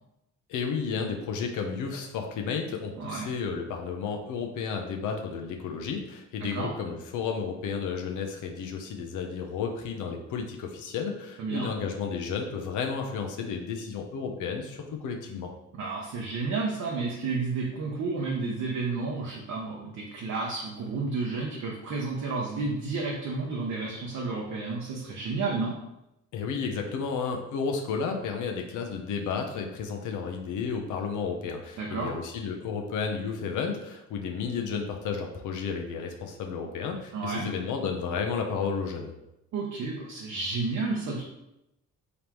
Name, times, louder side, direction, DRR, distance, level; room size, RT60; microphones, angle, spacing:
voice 1, 0.5-15.5 26.3-39.1, left 5 dB, 80° left, 2 dB, 0.7 m, -32 dB
voice 2, 3.0-3.3 6.4-6.7 11.4-11.7 15.7-25.7 31.8-32.1 37.1-37.5 39.5-41.2, right 3 dB, 70° right, -2 dB, 0.8 m, -31 dB
3.9 x 3.4 x 3.0 m, 0.88 s
cardioid pair, 90°, 30 cm